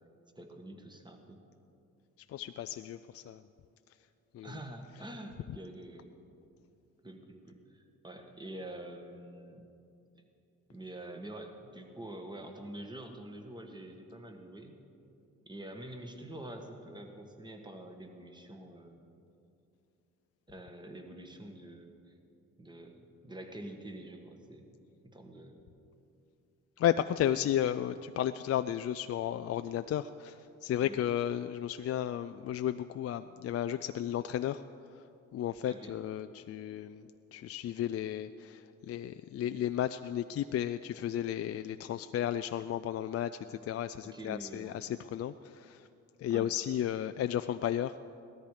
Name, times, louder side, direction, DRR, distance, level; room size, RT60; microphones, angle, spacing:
voice 1, 0.4-1.4 4.4-6.1 7.0-9.7 10.1-10.2 10.7-14.7 15.5-19.1 20.5-22.1 22.6-24.7 25.0-25.6 30.8-31.0 35.7-35.9 44.1-44.8 46.3-46.5, right 1 dB, 15° right, 4 dB, 1.7 m, -46 dB
voice 2, 2.3-3.4 4.3-4.6 26.8-34.6 34.9-45.9 46.2-48.0, left 11 dB, 50° left, 10 dB, 0.4 m, -33 dB
17.5 x 13.5 x 5.0 m, 2.7 s
cardioid pair, 90°, 30 cm